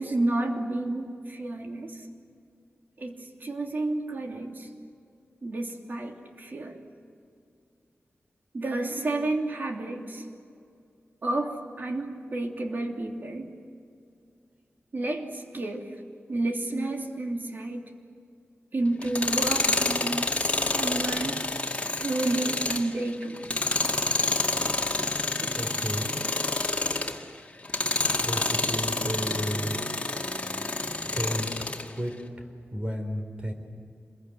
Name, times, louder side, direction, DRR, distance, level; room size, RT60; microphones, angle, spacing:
voice 1, 0.0-2.0 3.0-4.7 5.4-6.8 8.5-10.2 11.2-13.5 14.9-15.9 16.3-17.9 18.7-20.3 20.7-21.4 22.0-23.4 25.4-25.5, right 2 dB, 50° right, 2 dB, 3.0 m, -30 dB
Tools, 19.0-27.2 27.6-31.9, left 2 dB, 30° left, 2.2 m, -28 dB
voice 2, 25.5-26.2 28.2-29.8 31.2-31.5 31.9-33.5, equal, 30° right, 4 dB, 4.5 m, -33 dB
28.0 x 22.0 x 7.8 m, 2.4 s
wide cardioid pair, 105°, 4 cm